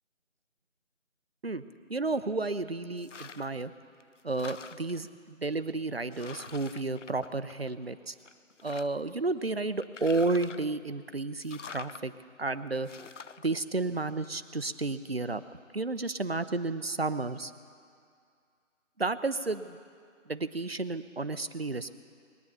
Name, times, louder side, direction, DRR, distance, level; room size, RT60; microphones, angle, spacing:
voice 1, 1.9-3.7 4.2-8.1 8.6-12.1 12.4-12.9 13.4-15.4 15.7-17.5 19.0-19.8 20.3-21.9, right 3 dB, 50° right, 12 dB, 0.6 m, -32 dB
sound 1, 3.0-3.6 4.0-5.1 5.7-5.8 6.1-7.8 8.2-9.1 9.8-10.8 11.4-12.0 12.8-13.5, left 5 dB, 70° left, 0.5 m, -46 dB
21.0 x 9.3 x 7.3 m, 2.3 s
figure-of-eight pair, 175°, 38 cm